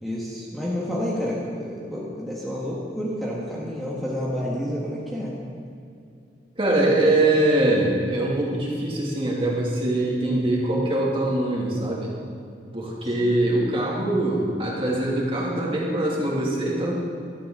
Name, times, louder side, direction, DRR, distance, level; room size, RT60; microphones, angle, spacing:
voice 1, 0.0-5.3 13.2-13.4, equal, ahead, -6 dB, 1.6 m, -29 dB
voice 2, 6.6-12.1 12.7-16.9, right 1 dB, 30° right, -4 dB, 2.6 m, -23 dB
17.0 x 13.0 x 3.9 m, 2.4 s
head